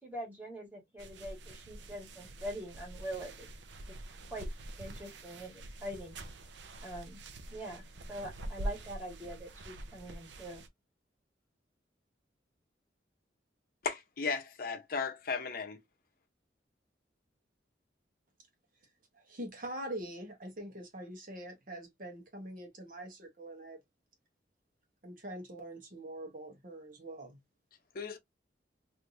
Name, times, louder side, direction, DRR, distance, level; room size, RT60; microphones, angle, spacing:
voice 1, 0.0-3.5 4.3-4.5 4.8-6.2 6.8-7.2 7.5-7.8 8.1-10.6, right 1 dB, 10° right, 1.8 m, -43 dB
sound 1, 1.0-10.7, right 1 dB, 85° right, 0.6 m, -45 dB
voice 2, 13.8-15.8 27.9-28.2, left 5 dB, 55° left, 0.6 m, -35 dB
voice 3, 19.1-23.8 25.0-27.4, right 1 dB, 50° right, 1.1 m, -44 dB
3.3 x 2.6 x 2.6 m
head